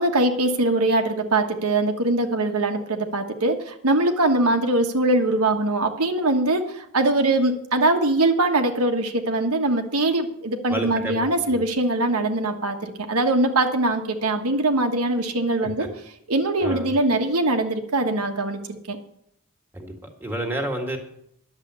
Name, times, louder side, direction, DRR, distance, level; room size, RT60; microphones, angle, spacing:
voice 1, 0.0-15.9 16.3-18.6 18.9-19.0, right 2 dB, 80° right, 4 dB, 1.4 m, -22 dB
voice 2, 10.7-11.6 15.6-15.9 16.6-16.9 19.7-19.9 20.2-21.0, right 1 dB, 10° right, 1 dB, 1.9 m, -30 dB
11.0 x 7.5 x 8.2 m, 0.71 s
head